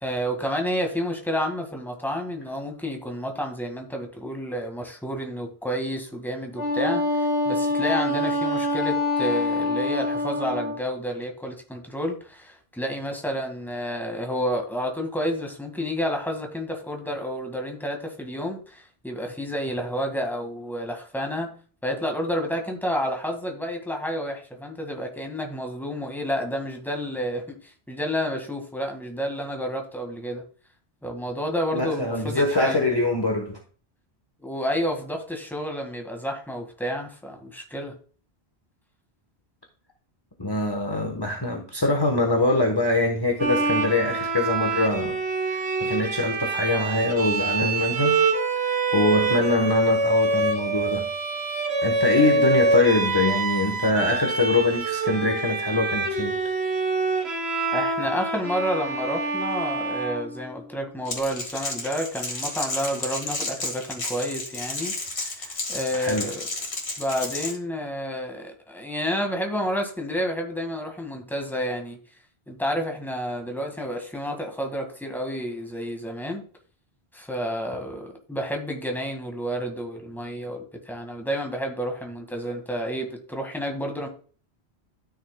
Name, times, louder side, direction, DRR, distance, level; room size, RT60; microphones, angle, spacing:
voice 1, 0.0-21.5 21.8-30.4 31.0-32.8 34.4-37.9 52.2-52.3 57.7-66.5 67.0-72.0 72.5-76.4 77.1-84.1, equal, ahead, 1.7 m, -30 dB
Wind instrument woodwind instrument, 6.5-10.8, left 2 dB, 20° right, 2.8 m, -25 dB
voice 2, 31.7-33.6 40.4-45.2 45.5-48.2 48.7-51.1 51.8-56.4 65.9-66.3, left 2 dB, 25° left, 1.1 m, -23 dB
Bowed string instrument, 43.4-60.8, right 3 dB, 85° right, 1.5 m, -26 dB
Crackle, 61.1-67.6, left 2 dB, 85° left, 2.1 m, -32 dB
12.5 x 6.5 x 2.2 m
omnidirectional pair, 1.1 m